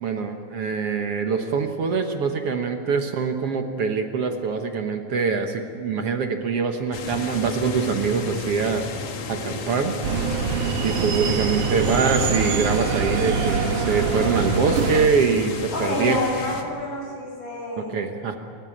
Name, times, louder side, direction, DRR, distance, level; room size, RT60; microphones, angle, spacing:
voice 1, 0.0-8.9 9.3-10.0 10.8-16.2 17.8-18.4, right 5 dB, 60° right, 5 dB, 1.9 m, -24 dB
sound 1, 6.9-16.6, left 4 dB, 60° left, 2.7 m, -33 dB
sound 2, 10.0-15.1, right 5 dB, 75° right, 2.8 m, -24 dB
voice 2, 15.7-18.0, left 2 dB, 80° left, -2 dB, 8.7 m, -28 dB
29.5 x 14.0 x 8.7 m, 2.5 s
omnidirectional pair, 3.5 m